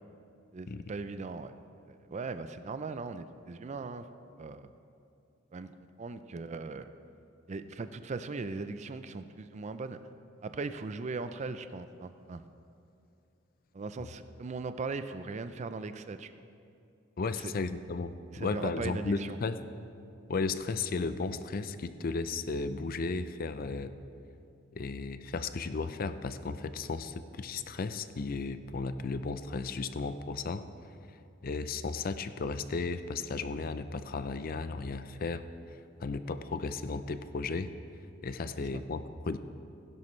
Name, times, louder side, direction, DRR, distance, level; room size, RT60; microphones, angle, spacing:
voice 1, 0.5-1.5 1.9-4.0 4.4-4.7 5.5-6.9 7.5-10.0 10.4-12.4 13.7-16.3 17.3-17.5 18.3-19.4 38.7-38.8, right 4 dB, 35° right, 11 dB, 0.4 m, -39 dB
voice 2, 17.2-19.6 20.3-23.9 24.7-30.6 31.4-35.5 36.0-37.7 38.2-39.4, left 4 dB, 45° left, 11 dB, 0.5 m, -34 dB
16.5 x 11.0 x 3.2 m, 2.6 s
head